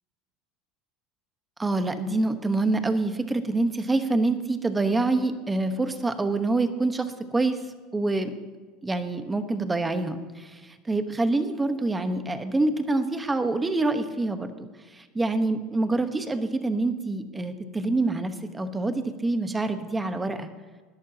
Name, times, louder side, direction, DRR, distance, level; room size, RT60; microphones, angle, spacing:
voice 1, 1.6-7.6 7.9-8.3 8.8-20.5, right 2 dB, 15° right, 9 dB, 1.1 m, -26 dB
20.5 x 11.0 x 2.9 m, 1.4 s
supercardioid pair, 110°, 0 cm